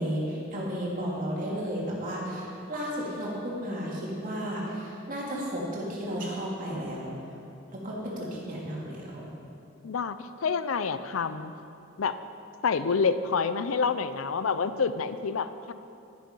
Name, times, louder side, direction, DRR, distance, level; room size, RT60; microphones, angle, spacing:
voice 1, 0.0-7.1 7.7-9.2, equal, 40° right, -5 dB, 2.8 m, -33 dB
voice 2, 9.8-11.5 12.0-12.2 12.6-15.7, left 5 dB, 80° left, 12 dB, 0.5 m, -28 dB
11.0 x 10.0 x 5.5 m, 2.7 s
head